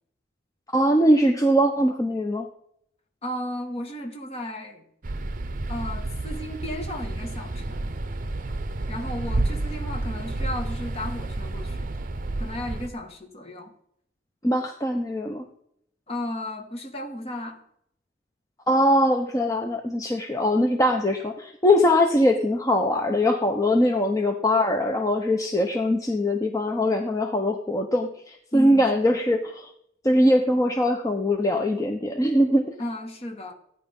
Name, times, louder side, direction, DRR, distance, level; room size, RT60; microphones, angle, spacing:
voice 1, 0.7-2.5 14.4-15.4 18.7-29.7 30.0-32.7, left 1 dB, 20° left, 0.9 m, -22 dB
voice 2, 3.2-4.9 5.7-7.9 8.9-11.9 12.4-13.7 16.1-17.6 28.5-29.2 32.8-33.5, left 1 dB, 35° left, 1.9 m, -34 dB
sound 1, 5.0-12.9, right 2 dB, 50° right, 0.8 m, -30 dB
15.5 x 10.0 x 5.4 m
head